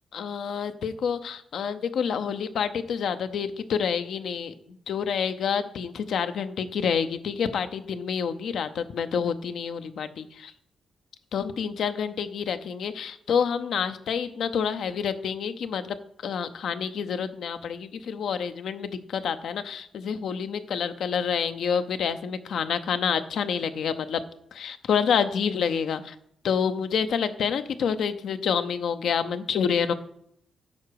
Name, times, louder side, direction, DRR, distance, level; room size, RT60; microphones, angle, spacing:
voice 1, 0.1-4.5 4.9-10.5 11.3-16.0 16.2-24.2 24.5-26.1 26.4-29.9, left 7 dB, 75° left, 10 dB, 0.6 m, -28 dB
9.6 x 5.9 x 4.7 m, 0.70 s
cardioid pair, 60°, 0 cm